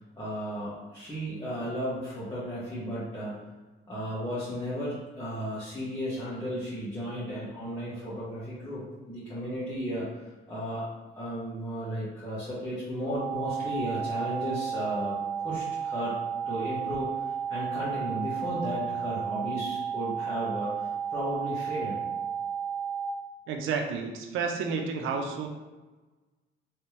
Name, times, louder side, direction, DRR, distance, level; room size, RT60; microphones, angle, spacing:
voice 1, 0.2-3.4 3.9-10.8 11.1-15.2 15.4-16.2 16.4-22.0, equal, 15° left, -11 dB, 1.5 m, -34 dB
sound 1, 13.1-23.1, right 7 dB, 65° left, 0.7 m, -33 dB
voice 2, 23.5-25.5, right 5 dB, 90° right, 3 dB, 0.5 m, -31 dB
3.3 x 3.2 x 3.0 m, 1.2 s
cardioid pair, 90°, 20 cm